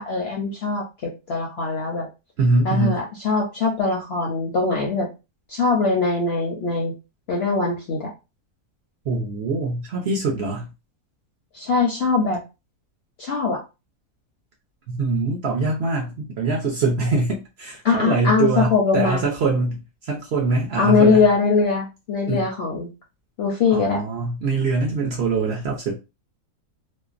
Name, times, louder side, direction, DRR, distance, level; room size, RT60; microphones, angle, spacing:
voice 1, 0.0-2.1 2.6-5.1 5.5-6.9 7.3-8.1 11.5-12.4 13.2-13.6 17.8-19.2 20.8-22.9 23.4-24.0, left 4 dB, 65° left, 0.6 m, -21 dB
voice 2, 2.4-3.0 9.1-10.7 14.9-21.2 22.3-22.5 23.7-26.0, right 3 dB, 60° right, 0.7 m, -23 dB
2.5 x 2.0 x 2.4 m
omnidirectional pair, 1.5 m